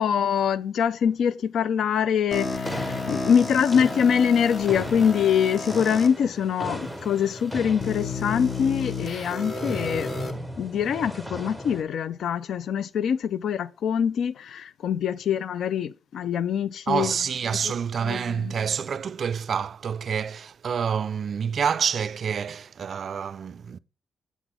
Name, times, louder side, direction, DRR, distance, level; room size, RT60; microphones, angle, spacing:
voice 1, 0.0-10.1 10.6-17.1 18.0-18.5, left 8 dB, 70° left, 0.4 m, -24 dB
sound 1, 2.3-6.1 6.8-6.9 7.8-10.3, left 3 dB, 35° left, 1.0 m, -32 dB
sound 2, 2.3-11.8, equal, 15° left, 1.7 m, -37 dB
voice 2, 16.9-23.8, right 7 dB, 45° right, 0.3 m, -27 dB
8.1 x 5.9 x 3.6 m
wide cardioid pair, 170°, 0 cm